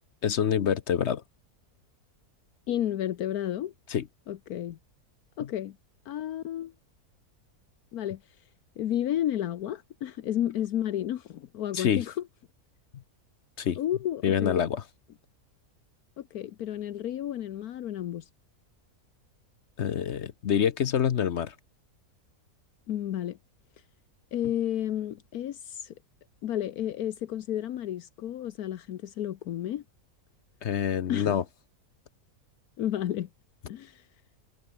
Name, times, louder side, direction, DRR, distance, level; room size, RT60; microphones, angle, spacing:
voice 1, 0.2-1.2 3.9-4.1 11.7-12.0 13.6-13.8 14.2-14.8 19.8-21.5 30.6-31.4, left 8 dB, 55° left, 1.0 m, -26 dB
voice 2, 2.7-3.7 4.3-4.8 5.4-5.8 6.1-6.7 7.9-8.2 8.8-12.2 13.8-14.6 16.2-18.3 22.9-23.4 24.3-25.9 26.4-29.8 31.1-31.4 32.8-33.3 33.7-34.0, left 11 dB, 75° left, 1.3 m, -32 dB
omnidirectional pair, 1.6 m